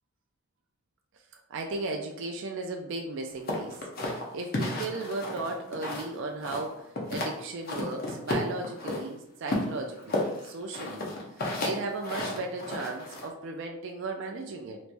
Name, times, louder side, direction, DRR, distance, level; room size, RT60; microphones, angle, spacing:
voice 1, 1.5-3.8 4.1-11.1 11.6-14.8, right 3 dB, 60° right, 2 dB, 0.4 m, -35 dB
sound 1, 3.5-6.1 6.4-7.3 7.7-9.0 9.5-13.3, left 2 dB, 45° left, 0.6 m, -32 dB
3.3 x 3.0 x 2.5 m, 0.82 s
head